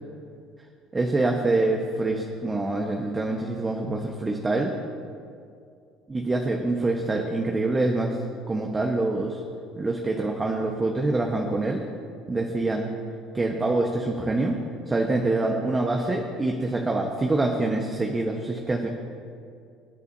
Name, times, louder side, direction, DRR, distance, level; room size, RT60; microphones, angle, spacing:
voice 1, 0.9-4.7 6.1-8.2 8.5-9.4 9.8-11.8 12.3-12.9 13.3-14.6 14.9-18.9, right 2 dB, 25° right, 1 dB, 1.1 m, -25 dB
23.5 x 8.2 x 2.7 m, 2.3 s
hypercardioid pair, 75°, 0 cm